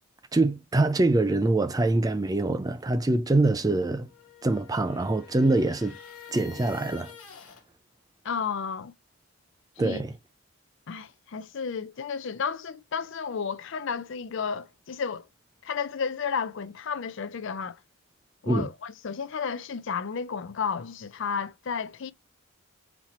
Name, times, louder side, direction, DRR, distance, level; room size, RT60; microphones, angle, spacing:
voice 1, 0.3-4.1 4.4-6.0 6.3-7.1 9.8-10.1 18.5-18.7, right 2 dB, 15° right, 0.3 m, -24 dB
sound 1, 4.0-7.6, left 7 dB, 75° left, 1.2 m, -47 dB
voice 2, 8.2-8.9 9.8-10.0 10.9-15.3 15.6-17.8 18.4-22.1, left 6 dB, 55° left, 0.4 m, -32 dB
4.0 x 3.0 x 4.2 m
head